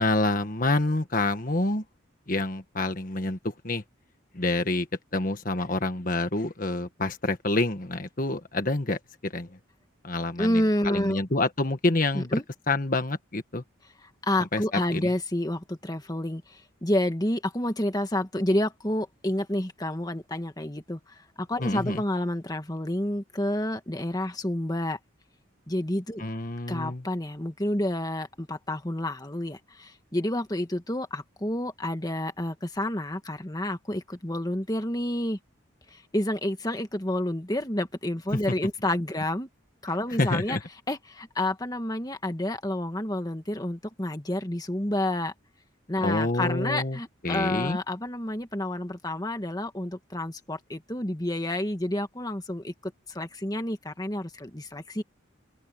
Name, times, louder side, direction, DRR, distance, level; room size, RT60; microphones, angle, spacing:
voice 1, 0.0-1.8 2.3-3.8 4.3-4.9 5.1-9.6 10.0-12.4 12.7-13.6 14.5-14.6 14.9-15.1 21.6-22.0 26.2-27.0 38.3-38.4 40.2-40.6 46.0-47.0 47.2-47.8, left 2 dB, 45° left, 1.6 m, -27 dB
voice 2, 10.4-11.2 12.1-12.4 14.2-25.0 25.7-26.2 26.7-35.4 35.9-39.5 39.8-40.6 40.9-45.3 45.9-55.0, left 1 dB, 20° left, 1.7 m, -29 dB
open air
head